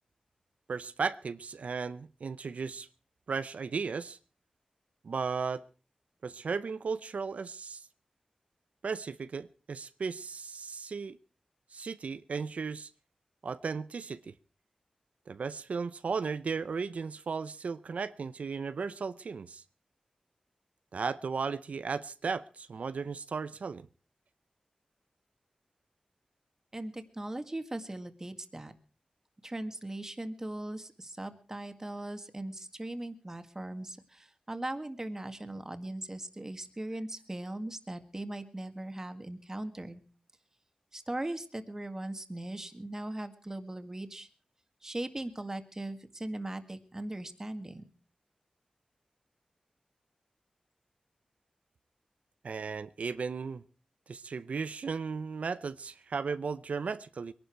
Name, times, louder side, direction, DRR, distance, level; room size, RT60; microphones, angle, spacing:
voice 1, 0.7-2.9 3.3-4.2 5.0-5.6 6.2-7.8 8.8-11.2 11.7-12.9 13.4-14.3 15.3-19.6 20.9-23.9 52.4-53.6 54.1-57.3, right 5 dB, 75° right, 0.7 m, -35 dB
voice 2, 26.7-28.7 29.4-40.0 40.9-44.3 44.8-47.9, right 1 dB, 20° right, 1.9 m, -39 dB
22.5 x 11.5 x 4.6 m
wide cardioid pair, 75°, 2 cm